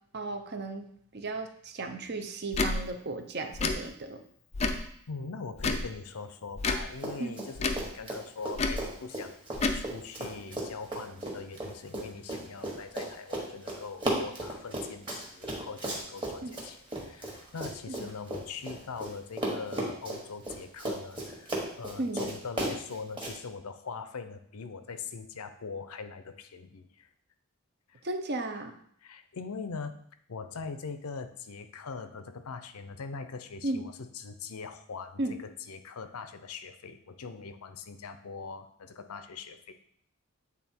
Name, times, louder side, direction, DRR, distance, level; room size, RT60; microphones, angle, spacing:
voice 1, 0.1-0.9 1.1-4.2 7.2-7.5 16.4-16.5 17.9-18.1 22.0-22.2 28.0-28.8 33.6-33.8 35.2-35.4, right 2 dB, 45° right, 7 dB, 0.6 m, -35 dB
Tick / Tick-tock, 2.5-2.7 3.5-3.8 4.5-4.9 5.6-5.9 6.6-6.9 7.6-7.9 8.6-8.8 9.5-9.8, left 3 dB, 30° left, 0.4 m, -29 dB
voice 2, 5.1-9.5 9.7-27.1 27.9-28.0 29.0-30.0 30.3-39.7, left 5 dB, 85° left, 10 dB, 0.6 m, -42 dB
Run, 6.9-7.5 7.7-19.1 19.4-23.3, right 1 dB, 20° right, 1.4 m, -35 dB
8.4 x 3.6 x 4.4 m, 0.64 s
head